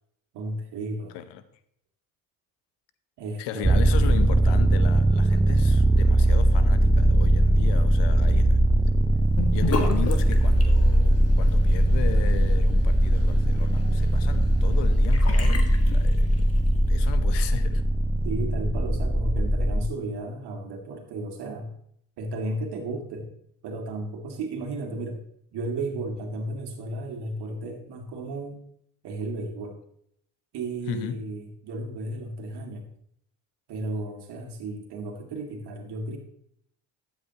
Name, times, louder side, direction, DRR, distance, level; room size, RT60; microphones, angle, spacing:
voice 1, 0.3-1.2 3.2-3.9 18.2-21.8 22.2-23.3 23.6-25.2 25.5-28.6 29.0-29.8 30.5-32.9 33.7-36.2, right 2 dB, 65° right, 2.4 m, -33 dB
voice 2, 3.4-8.6 9.5-16.5 16.9-17.8 30.9-31.2, left 11 dB, 75° left, 1.0 m, -36 dB
sound 1, 3.6-19.9, right 1 dB, 10° right, 0.5 m, -20 dB
Sink (filling or washing) / Bathtub (filling or washing), 9.4-16.7, left 3 dB, 35° left, 1.8 m, -35 dB
13.0 x 8.8 x 2.9 m
hypercardioid pair, 60°, 42 cm